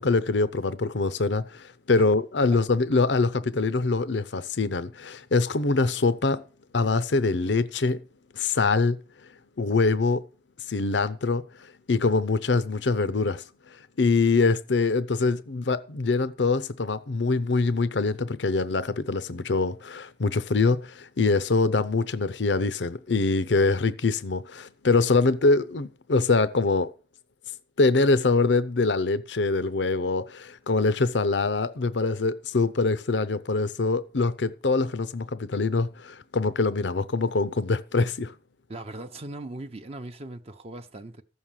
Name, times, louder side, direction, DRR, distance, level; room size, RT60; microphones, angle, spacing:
voice 1, 0.0-6.4 6.7-8.0 8.3-9.0 9.6-10.3 10.7-13.4 14.0-26.9 27.8-38.3, left 3 dB, 70° left, 0.7 m, -24 dB
voice 2, 38.7-41.2, right 2 dB, 35° right, 0.7 m, -39 dB
14.5 x 6.5 x 7.4 m
head